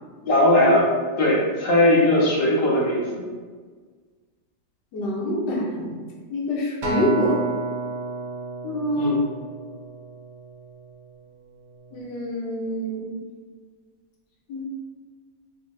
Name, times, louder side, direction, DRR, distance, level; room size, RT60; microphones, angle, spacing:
voice 1, 0.2-0.9 1.2-3.1 8.9-9.2, left 1 dB, 45° left, -4 dB, 0.8 m, -19 dB
voice 2, 4.9-6.0 6.3-7.4 8.6-9.1 11.9-13.1 14.5-14.7, left 1 dB, 70° left, -5 dB, 1.4 m, -26 dB
Acoustic guitar, 6.8-11.2 11.9-12.0, right 3 dB, 60° right, 0.7 m, -31 dB
3.6 x 2.6 x 3.1 m, 1.5 s
omnidirectional pair, 2.0 m